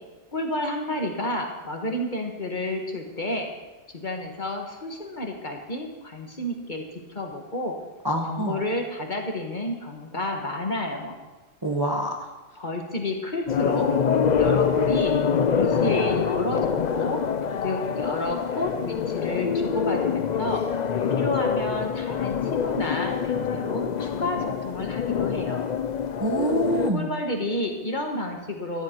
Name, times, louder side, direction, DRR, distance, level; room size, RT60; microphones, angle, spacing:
voice 1, 0.3-3.5 3.9-6.8 7.1-7.7 8.3-11.1 12.5-13.9 14.4-15.1 15.5-17.2 17.6-20.6 21.2-25.7 26.9-28.8, left 1 dB, 35° left, 2 dB, 1.6 m, -30 dB
voice 2, 8.0-8.6 11.6-12.3 26.2-27.1, right 1 dB, 20° right, 1 dB, 0.9 m, -26 dB
sound 1, 13.5-26.9, left 7 dB, 55° left, 0.5 m, -25 dB
14.0 x 10.5 x 4.5 m, 1.2 s
omnidirectional pair, 1.3 m